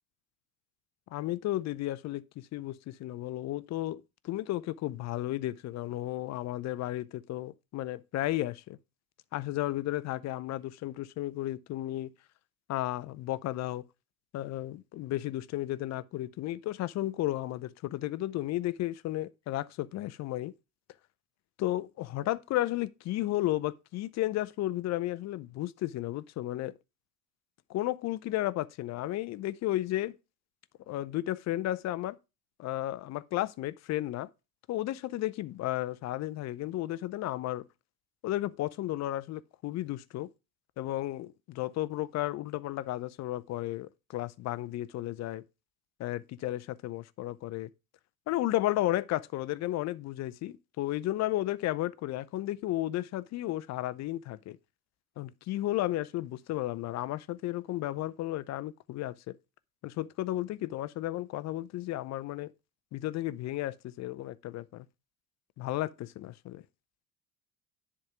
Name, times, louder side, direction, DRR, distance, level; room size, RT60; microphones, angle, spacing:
voice 1, 1.1-8.8 9.3-12.1 12.7-13.8 14.3-20.5 21.6-26.7 27.7-30.2 30.9-32.2 32.6-34.3 34.7-37.6 38.2-40.3 40.8-45.4 46.0-47.7 48.3-54.6 55.2-59.3 59.8-62.5 62.9-64.9 65.6-66.6, left 15 dB, 40° left, 0.6 m, -33 dB
10.5 x 3.7 x 5.9 m
hypercardioid pair, 65°, 43 cm